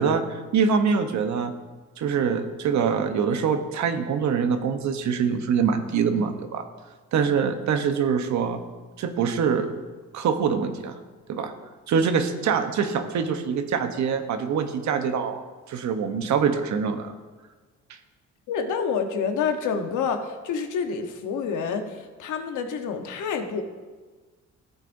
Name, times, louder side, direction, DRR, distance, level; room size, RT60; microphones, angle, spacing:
voice 1, 0.0-1.5 2.0-6.6 7.1-8.6 9.0-9.7 10.1-11.0 11.3-11.5 11.9-15.4 15.7-17.1, right 6 dB, 70° right, 7 dB, 1.0 m, -24 dB
voice 2, 18.5-23.6, left 6 dB, 80° left, 5 dB, 1.1 m, -28 dB
14.5 x 8.2 x 2.7 m, 1.4 s
cardioid pair, 90°, 30 cm